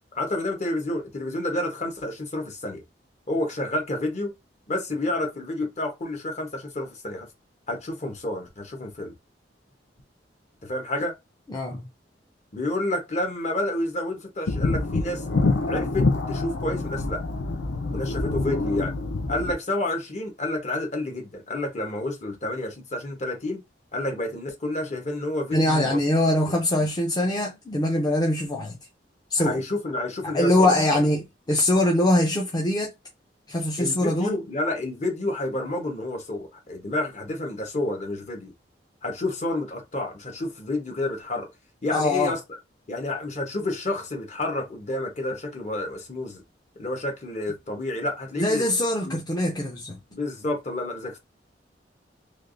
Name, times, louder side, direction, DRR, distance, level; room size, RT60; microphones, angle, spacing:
voice 1, 0.1-2.8 3.3-4.3 4.7-7.3 7.7-9.1 10.6-11.1 12.5-15.4 15.7-17.2 17.9-18.9 19.3-23.6 23.9-26.0 26.5-26.8 29.4-31.0 33.8-38.5 39.0-41.5 41.8-42.4 42.9-46.4 46.8-48.6 49.0-49.2 50.1-51.2, left 1 dB, 40° left, 0.9 m, -29 dB
voice 2, 11.5-11.8 25.5-28.8 29.3-29.6 30.3-32.9 33.5-34.4 41.9-42.3 48.4-50.0, left 1 dB, 25° left, 0.5 m, -23 dB
sound 1, 14.5-19.5, left 3 dB, 90° left, 0.5 m, -26 dB
3.3 x 2.4 x 2.5 m
head